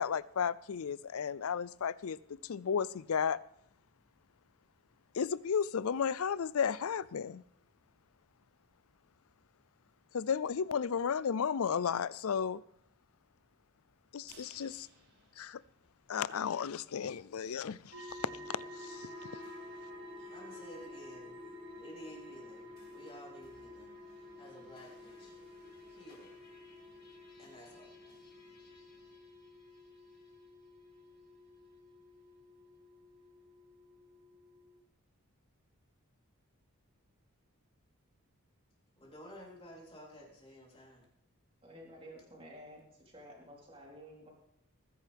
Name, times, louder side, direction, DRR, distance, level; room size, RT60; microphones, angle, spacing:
voice 1, 0.0-3.4 5.1-7.4 10.1-12.6 14.1-14.9 15.4-15.6 16.1-19.3, left 7 dB, 70° left, 19 dB, 0.4 m, -34 dB
sound 1, 14.3-16.4 16.8-16.9 17.2-17.3, right 4 dB, 90° right, 4.4 m, -61 dB
sound 2, 17.9-34.8, left 1 dB, 60° right, 1.5 m, -52 dB
sound 3, 18.1-30.4, left 3 dB, 45° left, 2.6 m, -57 dB
voice 2, 20.2-21.4 21.8-25.4 25.9-26.3 27.4-28.1 39.0-41.1, equal, 25° left, -3 dB, 3.6 m, -53 dB
voice 3, 41.6-44.3, equal, 25° right, -3 dB, 3.9 m, -52 dB
19.5 x 10.0 x 3.5 m, 0.72 s
head